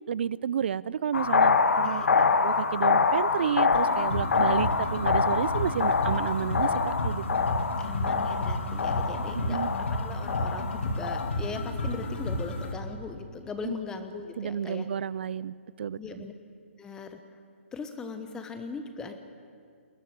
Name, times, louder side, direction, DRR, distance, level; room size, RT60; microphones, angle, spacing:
voice 1, 0.1-2.0 2.4-7.2 9.3-9.7 13.6-13.7 14.4-16.2, right 8 dB, 55° right, 21 dB, 0.6 m, -31 dB
sound 1, 1.1-11.3, left 5 dB, 85° left, 1.5 m, -26 dB
voice 2, 1.8-2.3 7.6-14.9 15.9-16.3 16.8-17.2 17.7-19.2, left 4 dB, 10° left, 8 dB, 1.0 m, -39 dB
sound 2, 3.7-12.7, left 1 dB, 60° left, 3.4 m, -32 dB
21.0 x 18.5 x 8.9 m, 2.2 s
hypercardioid pair, 160°, 7 cm